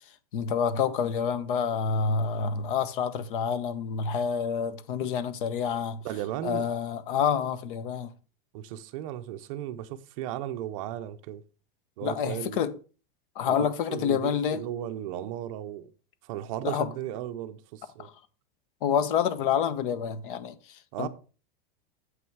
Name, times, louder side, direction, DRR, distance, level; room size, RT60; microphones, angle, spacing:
voice 1, 0.3-6.0 6.4-8.1 12.0-12.7 13.4-14.6 16.6-16.9 18.0-18.1 18.8-21.1, left 7 dB, 60° left, 1.0 m, -28 dB
voice 2, 6.0-6.7 8.5-11.4 12.0-12.6 13.5-15.9 16.2-18.1 20.9-21.1, right 11 dB, 35° right, 0.6 m, -35 dB
8.0 x 5.9 x 4.6 m
supercardioid pair, 175°, 30 cm